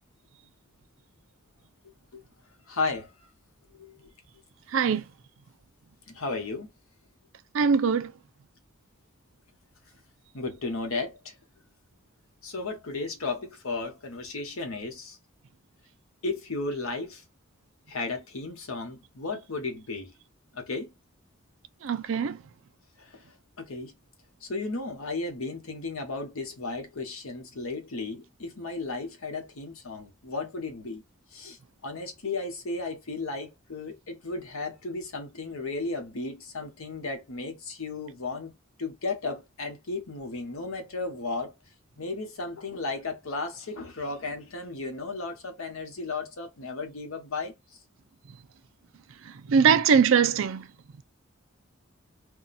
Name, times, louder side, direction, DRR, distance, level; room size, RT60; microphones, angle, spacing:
voice 1, 2.7-3.3 3.8-3.9 6.1-6.7 10.3-11.3 12.4-15.2 16.2-17.2 17.9-20.1 20.5-20.9 23.0-23.2 23.6-23.9 24.4-31.0 31.3-38.5 38.8-41.5 42.0-47.5, left 3 dB, 80° left, 1.1 m, -34 dB
voice 2, 4.7-5.0 7.5-8.1 21.8-22.4 49.2-50.7, right 6 dB, 65° right, 0.4 m, -22 dB
2.7 x 2.3 x 4.0 m
head